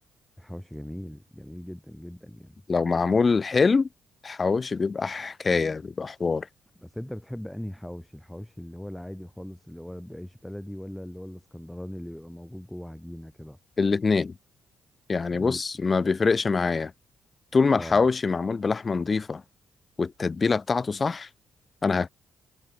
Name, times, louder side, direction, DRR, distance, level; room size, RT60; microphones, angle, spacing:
voice 1, 0.4-2.6 6.8-13.6 15.3-15.6 17.7-18.0, equal, 5° left, 1.7 m, -39 dB
voice 2, 2.7-3.9 4.2-6.5 13.8-14.3 15.1-16.9 17.5-19.4 20.0-21.3 21.8-22.1, left 4 dB, 30° left, 0.8 m, -24 dB
cardioid pair, 90°, 0 cm